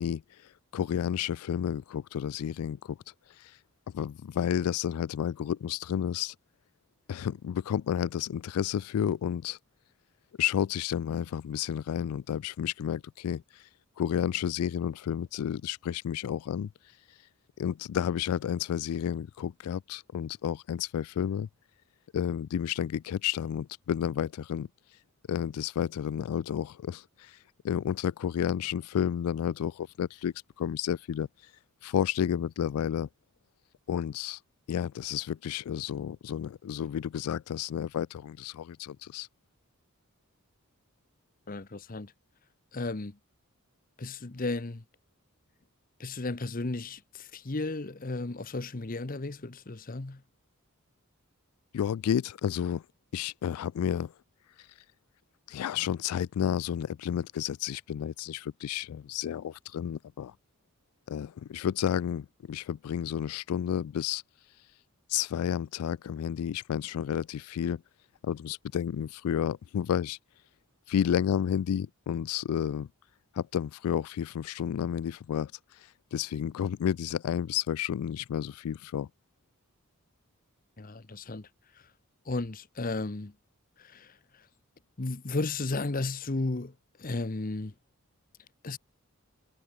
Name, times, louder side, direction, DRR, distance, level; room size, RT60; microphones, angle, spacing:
voice 1, 0.0-3.0 3.3-3.6 3.9-6.3 7.1-9.6 10.4-13.7 14.0-16.7 17.6-21.5 22.1-24.7 25.3-27.4 27.6-31.3 31.8-33.1 33.9-34.4 34.7-39.3 51.7-52.8 53.1-54.1 54.6-54.7 55.5-60.3 61.1-64.2 65.1-67.8 68.2-70.2 70.9-72.9 73.3-79.1, left 9 dB, 90° left, 0.3 m, -31 dB
voice 2, 41.5-42.1 42.7-43.2 44.0-44.8 46.0-50.2 80.8-81.5 82.3-83.3 83.8-84.2 85.0-86.7 87.0-87.7 88.6-88.8, left 2 dB, 40° left, 0.9 m, -34 dB
head